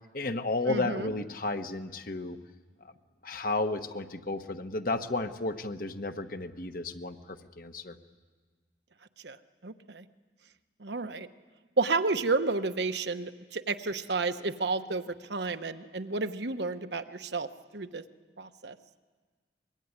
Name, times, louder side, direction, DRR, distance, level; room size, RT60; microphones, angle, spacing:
voice 1, 0.1-2.4 3.2-8.0, left 2 dB, 50° left, 8 dB, 1.2 m, -33 dB
voice 2, 0.7-1.1 9.2-9.4 9.6-10.1 10.8-11.3 11.8-18.0 18.4-18.8, right 3 dB, 75° right, 9 dB, 1.1 m, -31 dB
24.5 x 22.5 x 9.8 m, 1.4 s
head